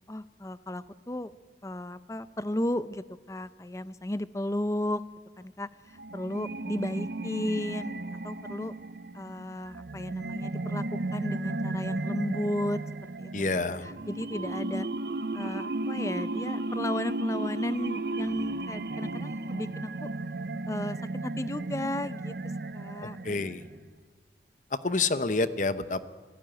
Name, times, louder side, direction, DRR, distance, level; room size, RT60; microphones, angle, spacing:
voice 1, 0.1-1.3 1.6-5.0 5.4-5.7 6.1-8.0 8.2-8.7 9.1-12.8 13.2-13.3 13.8-14.9 15.3-20.1 20.7-21.0 21.2-22.3 22.7-23.2, left 1 dB, 15° left, 14 dB, 0.6 m, -34 dB
sound 1, 5.9-23.9, right 2 dB, 60° right, 0.6 m, -34 dB
voice 2, 13.3-13.9 23.2-23.6 24.8-26.0, left 3 dB, 45° left, 12 dB, 0.9 m, -28 dB
26.0 x 16.5 x 9.1 m, 1.5 s
head